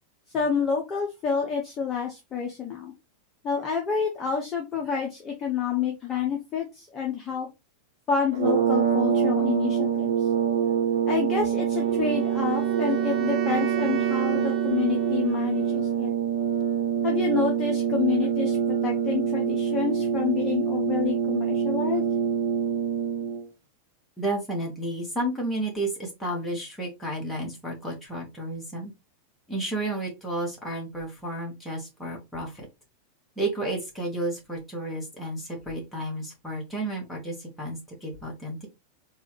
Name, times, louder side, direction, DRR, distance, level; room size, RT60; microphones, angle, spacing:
voice 1, 0.3-2.9 3.4-7.5 8.1-10.3 11.1-16.1 17.0-18.6 18.8-22.0, left 7 dB, 25° left, 1 dB, 0.9 m, -28 dB
sound 1, 8.3-23.5, right 8 dB, 60° right, 1.0 m, -25 dB
Wind instrument woodwind instrument, 11.7-15.9, right 15 dB, 30° right, 0.6 m, -34 dB
voice 2, 24.2-28.9 29.5-32.7 33.4-38.7, right 1 dB, 10° left, -2 dB, 1.8 m, -32 dB
4.0 x 2.5 x 3.2 m, 0.24 s
figure-of-eight pair, 90°, 0 cm